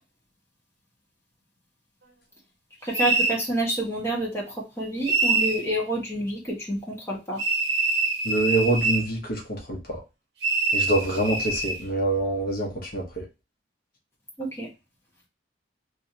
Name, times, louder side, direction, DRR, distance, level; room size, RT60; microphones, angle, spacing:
voice 1, 2.8-7.4 14.4-14.7, right 1 dB, 15° left, -4 dB, 1.5 m, -28 dB
sound 1, 2.9-3.4 5.0-5.6 7.4-9.1 10.4-11.8, right 3 dB, 65° right, 1.1 m, -24 dB
voice 2, 8.2-10.0 10.7-13.2, right 2 dB, 55° left, -1 dB, 1.2 m, -26 dB
3.4 x 3.2 x 2.8 m, 0.26 s
head